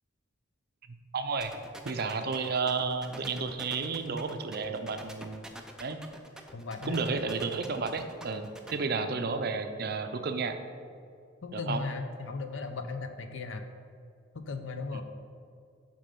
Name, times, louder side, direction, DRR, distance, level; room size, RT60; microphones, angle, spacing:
voice 1, 1.1-1.5 1.8-5.4 5.8-6.0 6.9-10.6 11.5-11.8 14.9-15.0, right 4 dB, 50° right, 7 dB, 0.6 m, -32 dB
sound 1, 1.4-8.7, right 1 dB, 5° right, 0.5 m, -46 dB
voice 2, 6.5-7.0 11.4-13.6 14.3-15.0, left 3 dB, 75° left, 7 dB, 0.7 m, -36 dB
7.4 x 5.3 x 5.3 m, 2.3 s
head